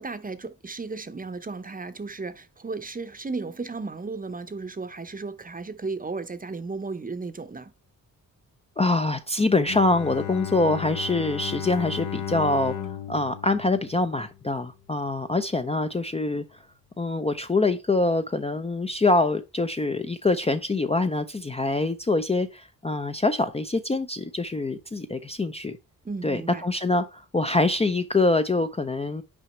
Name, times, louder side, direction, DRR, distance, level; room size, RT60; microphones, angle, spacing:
voice 1, 0.0-7.7 26.0-26.6, right 4 dB, 25° right, 0.7 m, -34 dB
voice 2, 8.8-16.4 17.0-25.8 26.2-29.2, left 2 dB, 20° left, 0.5 m, -25 dB
Bowed string instrument, 9.6-14.6, left 9 dB, 60° left, 0.8 m, -35 dB
6.2 x 4.9 x 4.3 m
cardioid pair, 85°, 35 cm